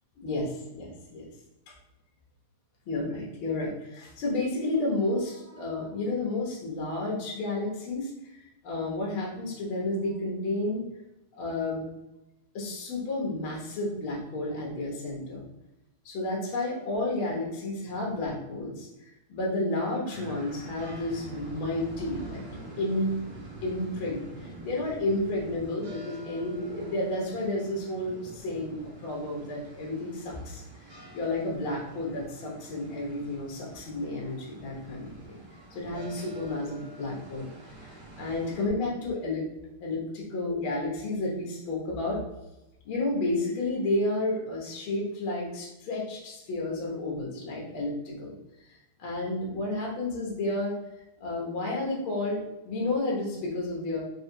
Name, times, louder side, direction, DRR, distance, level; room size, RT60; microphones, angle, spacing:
voice 1, 0.2-1.2 1.7-1.8 2.9-10.8 11.3-11.8 12.5-15.4 16.0-18.9 19.3-22.4 22.8-23.2 23.6-30.6 31.1-35.4 35.7-37.5 37.8-39.5 39.8-42.2 42.8-48.3 49.0-50.7 51.2-54.0, left 2 dB, 60° left, -3 dB, 1.6 m, -31 dB
sound 1, 20.0-38.6, right 2 dB, 70° right, 1.0 m, -46 dB
4.7 x 3.2 x 2.8 m, 0.94 s
omnidirectional pair, 3.4 m